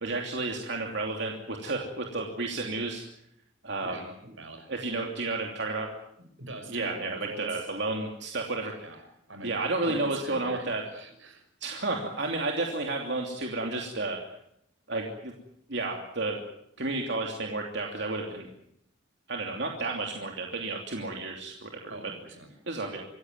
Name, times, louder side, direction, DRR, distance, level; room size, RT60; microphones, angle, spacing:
voice 1, 0.0-3.0 3.6-4.0 4.7-5.9 6.7-8.7 9.4-10.8 11.6-14.2 14.9-15.3 15.7-16.4 16.8-18.5 19.3-21.9 22.7-23.0, right 2 dB, 65° right, 1 dB, 2.9 m, -31 dB
voice 2, 3.8-4.7 6.2-7.7 8.8-9.0 9.3-11.4 21.9-22.5, right 1 dB, 85° right, 6 dB, 6.1 m, -44 dB
25.5 x 16.0 x 9.4 m, 0.77 s
head